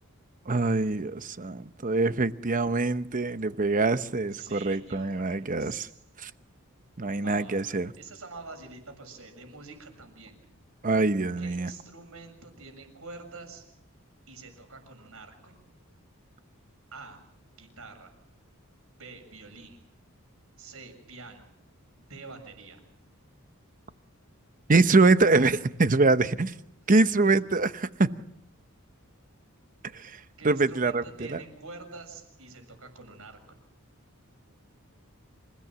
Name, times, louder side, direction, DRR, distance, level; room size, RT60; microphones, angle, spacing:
voice 1, 0.5-5.9 6.2-6.3 7.0-7.9 10.8-11.7 24.7-26.5 26.9-28.1 29.9-30.1 30.4-31.0 31.3-31.4, right 3 dB, 40° right, 0.9 m, -24 dB
voice 2, 4.3-6.0 7.2-10.4 11.4-13.7 14.3-15.6 16.9-17.2 17.6-18.1 19.0-19.8 20.6-21.5 22.0-22.8 27.0-27.4 30.4-33.6, right 3 dB, 70° right, 7.0 m, -46 dB
27.0 x 17.0 x 7.5 m
head